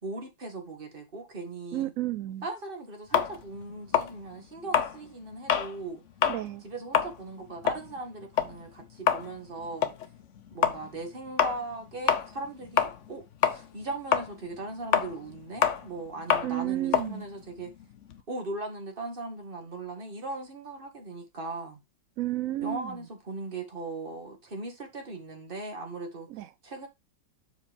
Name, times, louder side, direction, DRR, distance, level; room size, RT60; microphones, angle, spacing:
voice 1, 0.0-1.9 2.4-6.0 6.6-9.9 10.5-17.7 18.3-21.8 22.6-26.3 26.6-26.9, right 2 dB, 30° right, 2.0 m, -38 dB
voice 2, 1.7-2.4 6.2-6.6 16.4-17.2 22.2-23.0 26.3-26.5, right 15 dB, 85° right, 0.7 m, -32 dB
sound 1, 3.1-5.7 6.1-6.4 6.8-13.2 13.4-18.2, left 8 dB, 55° left, 0.9 m, -27 dB
6.5 x 5.1 x 5.2 m
omnidirectional pair, 2.0 m